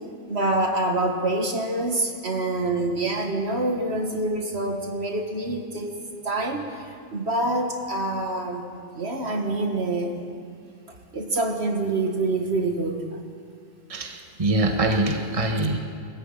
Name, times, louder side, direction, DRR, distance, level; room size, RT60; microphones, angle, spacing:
voice 1, 0.3-5.9 6.2-8.6 8.9-10.2 11.1-13.0, right 2 dB, 55° right, 3 dB, 1.9 m, -26 dB
voice 2, 13.9-15.8, right 2 dB, 25° right, 3 dB, 1.5 m, -24 dB
21.5 x 14.0 x 9.0 m, 2.2 s
omnidirectional pair, 1.3 m